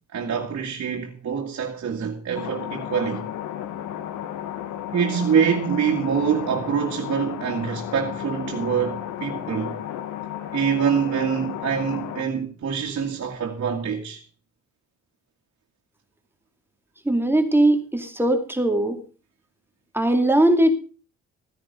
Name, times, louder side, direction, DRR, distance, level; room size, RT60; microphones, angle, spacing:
voice 1, 0.1-3.2 4.9-9.8 10.5-14.2, right 7 dB, 55° right, 2.1 m, -25 dB
sound 1, 2.3-12.2, left 11 dB, 85° left, 1.3 m, -33 dB
voice 2, 17.0-19.0 19.9-20.7, right 1 dB, 5° right, 2.5 m, -19 dB
15.5 x 9.9 x 5.3 m
cardioid pair, 90°, 30 cm